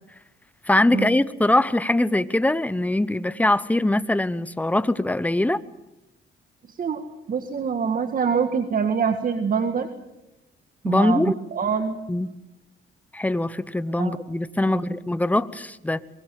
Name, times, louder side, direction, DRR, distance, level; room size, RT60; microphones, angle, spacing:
voice 1, 0.7-5.6 10.8-11.4 12.1-12.3 13.1-16.0, left 1 dB, 5° left, 0.9 m, -22 dB
voice 2, 6.7-9.9 10.8-12.0 14.0-14.2 14.6-15.0, right 6 dB, 45° right, 1.8 m, -25 dB
24.0 x 21.0 x 7.6 m
cardioid pair, 90°, 20 cm